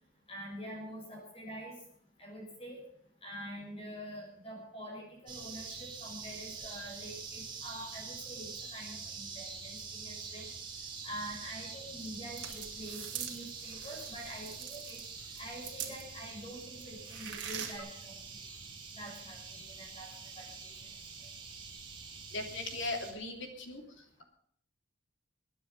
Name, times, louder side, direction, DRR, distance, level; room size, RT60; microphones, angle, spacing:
voice 1, 0.3-1.8 2.2-2.8 3.2-10.5 11.0-15.0 15.4-18.2 18.9-20.5, equal, 25° left, 0 dB, 5.8 m, -45 dB
sound 1, 5.3-23.1, right 5 dB, 25° right, 3.2 m, -45 dB
sound 2, 12.0-16.3 16.6-17.8, right 9 dB, 55° right, 2.4 m, -43 dB
voice 2, 22.3-23.8, left 2 dB, 65° left, 4 dB, 3.0 m, -38 dB
21.0 x 9.8 x 5.5 m, 0.65 s
head